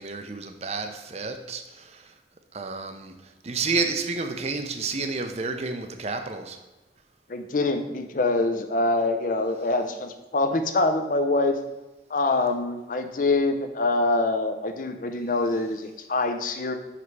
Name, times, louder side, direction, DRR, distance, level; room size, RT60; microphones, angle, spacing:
voice 1, 0.0-2.1 2.5-3.1 3.4-6.6, right 4 dB, 35° right, 6 dB, 0.6 m, -30 dB
voice 2, 7.3-11.6 12.1-16.8, left 2 dB, 50° left, 7 dB, 0.5 m, -25 dB
5.5 x 5.0 x 4.6 m, 1.1 s
head